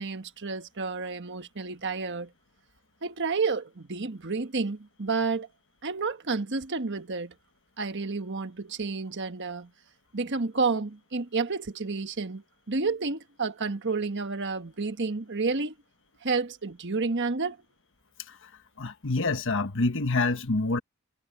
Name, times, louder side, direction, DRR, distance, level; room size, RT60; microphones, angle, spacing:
voice 1, 0.0-2.3 3.0-5.5 5.8-7.3 7.8-9.7 10.1-15.7 16.2-17.6, right 4 dB, 55° right, 1.4 m, -30 dB
voice 2, 18.8-20.8, left 3 dB, 60° left, 1.3 m, -27 dB
head